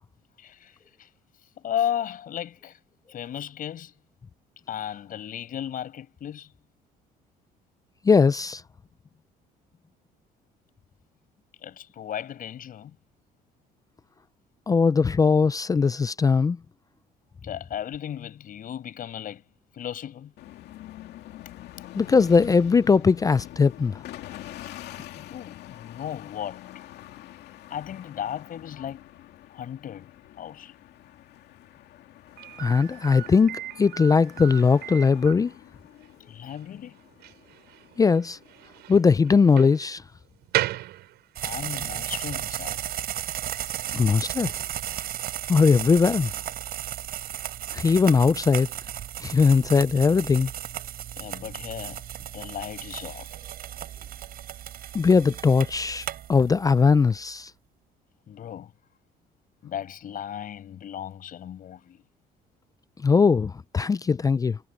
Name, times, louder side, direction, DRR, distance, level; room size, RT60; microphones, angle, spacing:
voice 1, 0.4-1.1 1.6-2.8 3.1-3.9 4.7-6.5 11.6-13.0 17.4-19.4 19.7-20.3 25.2-26.6 27.7-29.0 29.5-30.1 30.3-30.7 36.3-37.0 41.4-42.8 51.2-53.3 58.3-58.7 59.6-62.0, left 10 dB, 55° left, 5.6 m, -35 dB
voice 2, 8.1-8.6 14.7-16.6 21.9-24.0 32.6-35.5 38.0-38.4 38.9-40.0 43.9-44.5 45.5-46.3 47.7-48.7 49.2-50.5 54.9-57.5 63.0-64.6, left 5 dB, 20° left, 0.4 m, -20 dB
sound 1, 20.4-39.0, left 14 dB, 75° left, 2.5 m, -45 dB
Slam, 32.4-41.7, right 15 dB, 80° right, 7.1 m, -36 dB
sound 2, 41.4-56.8, right 11 dB, 65° right, 7.2 m, -35 dB
cardioid pair, 110°, 17 cm